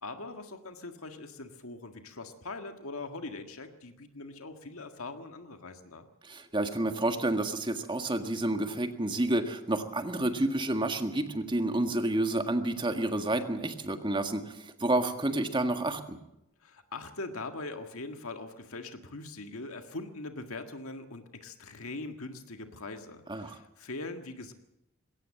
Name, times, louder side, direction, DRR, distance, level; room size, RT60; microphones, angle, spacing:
voice 1, 0.0-6.1 16.6-24.5, left 2 dB, 75° left, 6 dB, 1.8 m, -42 dB
voice 2, 6.2-16.2 23.3-23.6, right 1 dB, 20° right, 6 dB, 1.8 m, -29 dB
21.0 x 17.5 x 7.6 m, 0.85 s
head